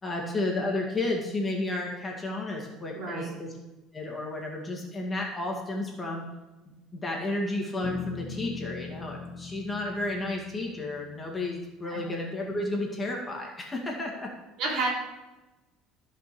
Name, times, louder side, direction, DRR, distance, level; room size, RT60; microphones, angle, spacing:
voice 1, 0.0-3.5 3.9-6.3 6.9-14.3, left 2 dB, 15° left, -1 dB, 2.1 m, -32 dB
voice 2, 2.9-3.3 11.8-12.0 14.6-14.9, right 3 dB, 60° right, -2 dB, 4.2 m, -30 dB
sound 1, 7.8-11.8, left 4 dB, 35° left, 1.0 m, -41 dB
15.0 x 5.3 x 6.9 m, 1.1 s
cardioid pair, 150°, 0 cm